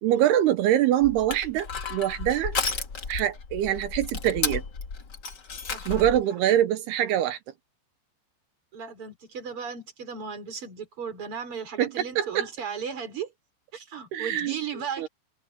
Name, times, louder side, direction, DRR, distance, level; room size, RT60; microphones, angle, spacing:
voice 1, 0.0-2.6 3.1-4.6 5.9-7.4 11.8-12.5 14.1-14.6 15.0-15.1, right 12 dB, 75° right, 2.6 m, -24 dB
Crushing, 1.0-6.2, left 5 dB, 80° left, 0.9 m, -33 dB
voice 2, 5.7-6.2 8.7-13.3 13.7-15.1, right 6 dB, 30° right, 4.9 m, -36 dB
omnidirectional pair, 5.3 m